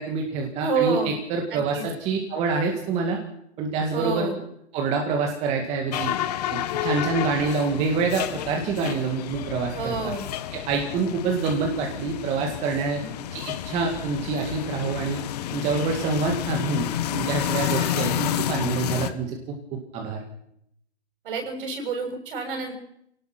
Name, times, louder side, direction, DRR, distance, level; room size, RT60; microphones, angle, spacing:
voice 1, 0.0-3.2 3.6-4.3 4.7-6.1 6.5-10.0 10.5-13.0 13.3-15.2 15.5-20.2, right 4 dB, 20° right, 2 dB, 2.1 m, -26 dB
voice 2, 0.6-1.1 1.5-1.8 3.9-4.4 9.8-10.3 13.0-13.1 21.2-22.7, right 4 dB, 50° right, 4 dB, 7.2 m, -28 dB
sound 1, 5.9-19.1, left 12 dB, 35° left, 1.4 m, -30 dB
24.0 x 18.5 x 6.0 m, 0.75 s
hypercardioid pair, 160°, 34 cm